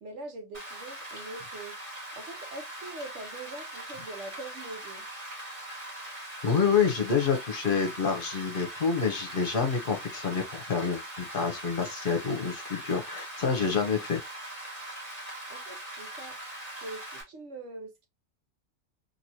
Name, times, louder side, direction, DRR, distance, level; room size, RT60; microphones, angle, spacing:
voice 1, 0.0-1.8 2.1-5.1 15.5-16.4 16.8-18.1, right 2 dB, 70° right, 1.2 m, -43 dB
Rain, 0.5-17.2, right 1 dB, 25° right, 1.3 m, -41 dB
voice 2, 6.4-14.2, left 6 dB, 50° left, 0.9 m, -27 dB
2.9 x 2.8 x 2.6 m
omnidirectional pair, 1.3 m